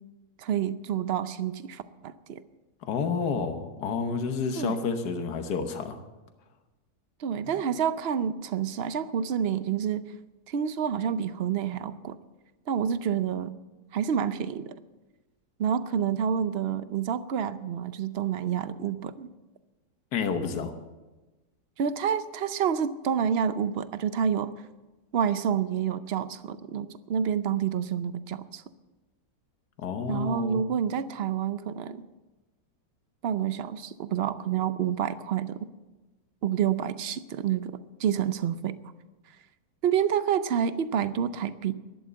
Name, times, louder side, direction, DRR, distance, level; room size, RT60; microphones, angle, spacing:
voice 1, 0.4-2.4 4.6-4.8 7.2-10.0 10.5-12.2 12.7-13.5 13.9-14.8 15.6-19.3 21.8-24.5 25.1-28.6 30.1-32.0 33.2-35.7 36.4-38.8 39.8-41.7, right 8 dB, 55° right, 13 dB, 0.7 m, -28 dB
voice 2, 2.8-6.0 20.1-20.7 29.8-30.6, left 5 dB, 75° left, 6 dB, 1.7 m, -30 dB
12.0 x 11.0 x 8.0 m, 1.1 s
omnidirectional pair, 1.7 m